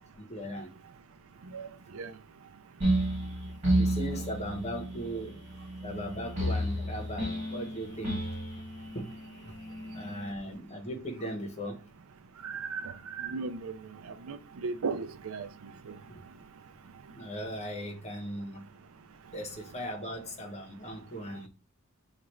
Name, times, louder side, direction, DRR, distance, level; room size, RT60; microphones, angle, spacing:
voice 1, 0.1-0.7 3.7-5.4 5.8-8.3 8.9-9.1 9.5-9.6 9.8-11.9 16.1-16.2 17.1-18.7 19.3-21.5, equal, 30° left, 1.0 m, -38 dB
sound 1, 2.8-10.3, right 1 dB, 35° right, 2.3 m, -32 dB
voice 2, 12.4-12.9 13.2-13.7 14.3-15.5, right 4 dB, 85° right, 0.5 m, -35 dB
5.8 x 2.5 x 3.1 m
head